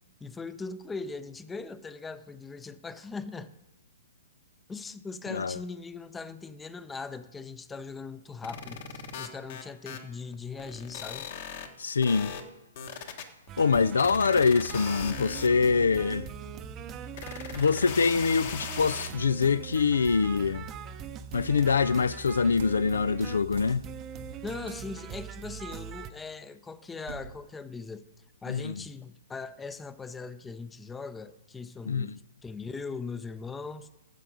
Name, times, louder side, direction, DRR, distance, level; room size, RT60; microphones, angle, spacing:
voice 1, 0.2-3.5 4.7-11.3 24.4-28.0 28.4-33.9, left 4 dB, 10° left, 0.5 m, -40 dB
sound 1, 8.4-10.0 10.3-11.7 12.0-12.4 12.8-13.7 14.0-15.5 16.5-16.6 17.1-19.1, left 7 dB, 55° left, 1.3 m, -39 dB
voice 2, 11.8-12.4 13.6-16.3 17.5-20.7 21.3-23.8 28.5-28.7 31.9-32.2, left 5 dB, 80° left, 0.3 m, -24 dB
sound 2, 13.5-26.1, right 8 dB, 30° right, 0.7 m, -41 dB
sound 3, 21.6-21.9 22.6-22.9 23.6-23.9 24.7-25.0 25.7-26.0 27.1-27.5, right 6 dB, 70° right, 1.1 m, -47 dB
12.5 x 7.6 x 5.2 m
hypercardioid pair, 125°, 0 cm